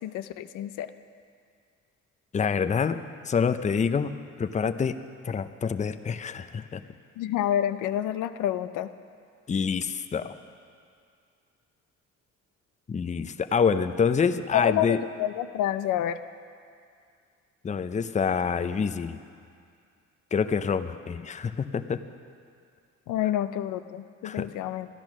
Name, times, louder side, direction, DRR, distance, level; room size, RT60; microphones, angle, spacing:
voice 1, 0.0-0.9 7.2-8.9 14.5-16.2 23.1-24.9, left 11 dB, 85° left, 11 dB, 0.5 m, -28 dB
voice 2, 2.3-4.1 4.4-5.0 5.2-6.8 9.5-10.4 12.9-15.0 17.6-19.2 20.3-22.0 24.2-24.5, left 6 dB, 25° left, 10 dB, 0.5 m, -26 dB
13.5 x 10.5 x 6.2 m, 2.3 s
cardioid pair, 90°, 30 cm